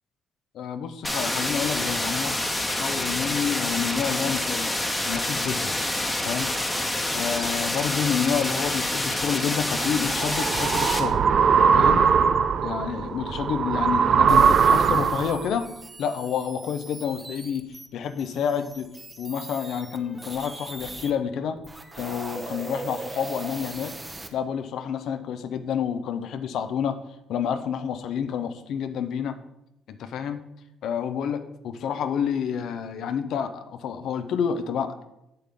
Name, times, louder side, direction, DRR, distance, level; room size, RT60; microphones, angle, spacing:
voice 1, 0.5-2.4 2.7-5.8 6.2-6.5 7.1-11.2 11.7-12.1 12.6-15.7 16.0-17.7 17.9-18.9 19.2-21.6 22.0-23.9 24.3-27.0 27.3-29.4 29.9-30.4 30.8-35.0, left 7 dB, 70° left, 9 dB, 0.6 m, -29 dB
sound 1, 1.0-11.0, left 1 dB, 15° left, 1.1 m, -27 dB
sound 2, 9.7-15.5, right 6 dB, 55° right, 0.4 m, -21 dB
sound 3, 14.3-21.1 21.6-24.3, right 2 dB, 20° right, 0.9 m, -39 dB
7.7 x 6.7 x 3.6 m, 0.88 s
cardioid pair, 80°, 0 cm